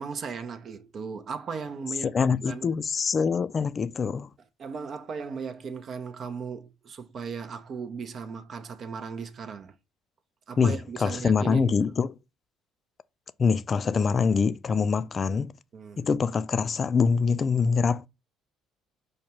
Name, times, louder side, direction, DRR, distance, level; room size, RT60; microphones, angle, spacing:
voice 1, 0.0-2.7 4.6-9.7 10.5-11.8 15.7-16.1, right 5 dB, 50° right, 0.5 m, -37 dB
voice 2, 2.0-4.3 10.6-12.1 13.4-15.5 16.0-18.0, left 5 dB, 40° left, 0.3 m, -24 dB
4.9 x 2.2 x 2.8 m
supercardioid pair, 75°, 0 cm